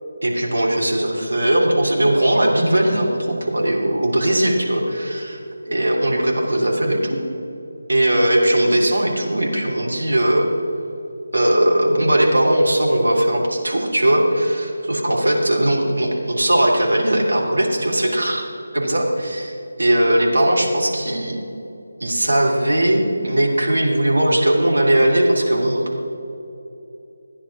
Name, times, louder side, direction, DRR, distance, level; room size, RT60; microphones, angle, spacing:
voice 1, 0.2-5.4 5.7-7.2 7.9-10.5 11.3-18.4 18.7-21.4 22.0-26.1, right 1 dB, 65° right, -2 dB, 3.1 m, -19 dB
14.0 x 9.9 x 6.0 m, 2.9 s
figure-of-eight pair, 155°, 0 cm